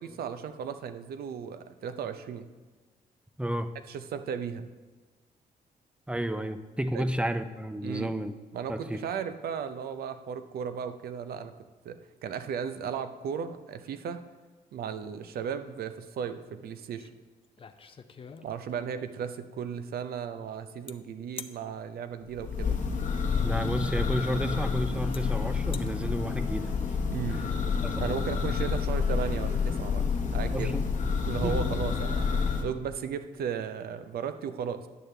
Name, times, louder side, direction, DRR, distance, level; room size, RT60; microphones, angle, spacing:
voice 1, 0.2-2.5 3.9-4.7 6.9-7.1 7.8-8.2 8.5-11.5 11.8-14.2 14.7-17.1 18.4-22.8 27.1-27.4 28.0-30.1 30.3-30.7 31.0-34.9, right 7 dB, 75° right, 10 dB, 0.6 m, -35 dB
voice 2, 3.4-3.7 6.1-8.3 8.7-9.0 23.4-26.7 27.3-27.4 27.8-28.0 30.5-30.9 31.4-31.7, right 1 dB, 5° right, 10 dB, 0.6 m, -31 dB
sound 1, 17.0-17.1 17.4-18.9 20.9-21.0 21.4-21.6 23.5-23.6 24.5-24.6 25.1-25.2 25.6-25.9, left 5 dB, 35° left, 0.5 m, -44 dB
Church bell, 22.3-32.6, left 5 dB, 50° left, 1.0 m, -29 dB
10.5 x 6.5 x 3.3 m, 1.3 s
cardioid pair, 70°, 16 cm